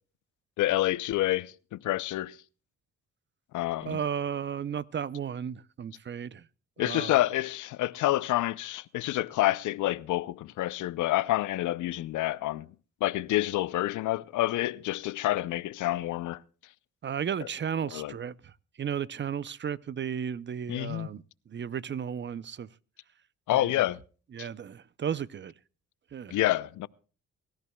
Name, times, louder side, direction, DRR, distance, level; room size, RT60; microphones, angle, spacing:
voice 1, 0.6-2.4 3.5-4.0 6.8-12.7 13.0-16.4 17.4-17.5 17.8-18.1 20.7-21.1 23.5-24.0 24.4-24.5 26.3-26.9, left 15 dB, 80° left, 0.7 m, -28 dB
voice 2, 3.9-6.4 6.8-7.2 17.0-18.5 18.8-21.2 21.5-22.7 23.5-23.7 24.3-25.5 26.1-26.4, right 8 dB, 40° right, 0.7 m, -34 dB
24.0 x 14.0 x 2.3 m
cardioid pair, 90°, 30 cm